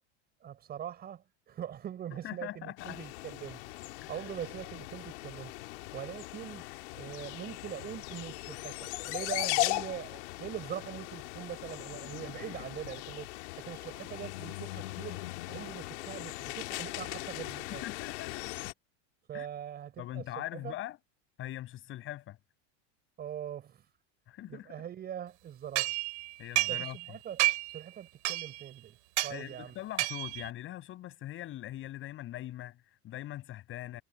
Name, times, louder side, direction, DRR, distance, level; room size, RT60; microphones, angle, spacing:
voice 1, 0.4-3.6 4.1-5.5 5.9-6.6 6.9-13.3 13.6-15.2 15.5-17.8 19.3-20.7 23.2-23.8 24.5-25.9 26.7-27.4 27.7-29.0 29.2-29.7, right 10 dB, 25° right, 5.0 m, -42 dB
voice 2, 2.1-3.0 4.0-4.1 17.7-18.7 19.3-19.5 20.0-21.0 21.4-22.4 24.3-24.7 26.4-27.2 29.3-34.0, left 14 dB, 35° left, 6.5 m, -42 dB
sound 1, 2.8-18.7, left 22 dB, 70° left, 2.5 m, -39 dB
sound 2, 25.8-27.1 27.4-27.8 28.3-28.7 29.2-29.4 30.0-30.5, right 20 dB, 80° right, 7.3 m, -30 dB
supercardioid pair, 150°, 35 cm